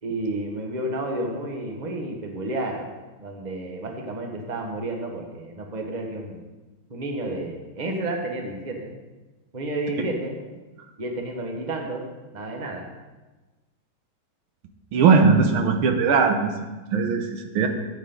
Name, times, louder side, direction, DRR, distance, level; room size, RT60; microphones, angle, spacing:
voice 1, 0.0-2.9 3.2-6.4 6.9-8.9 9.5-10.4 11.0-12.0 12.3-12.8, right 2 dB, 25° right, 1 dB, 1.3 m, -31 dB
voice 2, 14.9-17.7, right 5 dB, 80° right, 5 dB, 1.8 m, -20 dB
13.5 x 8.6 x 3.9 m, 1.2 s
omnidirectional pair, 2.3 m